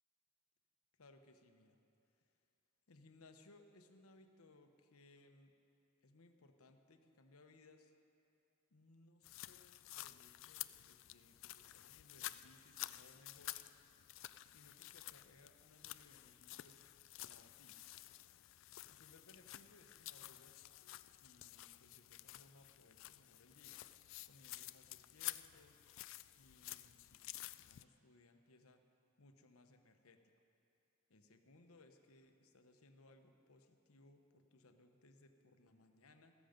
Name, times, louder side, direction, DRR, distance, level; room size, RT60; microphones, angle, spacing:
voice 1, 1.0-1.8 2.9-5.5 6.0-7.9 8.7-13.6 14.4-16.9 17.2-17.8 18.9-20.7 21.2-23.8 24.3-25.8 26.3-28.8 29.2-30.2 31.1-36.3, left 2 dB, 80° left, 6 dB, 1.0 m, -66 dB
sound 1, 9.2-27.8, left 16 dB, 60° left, 0.3 m, -51 dB
15.0 x 13.5 x 5.2 m, 2.6 s
head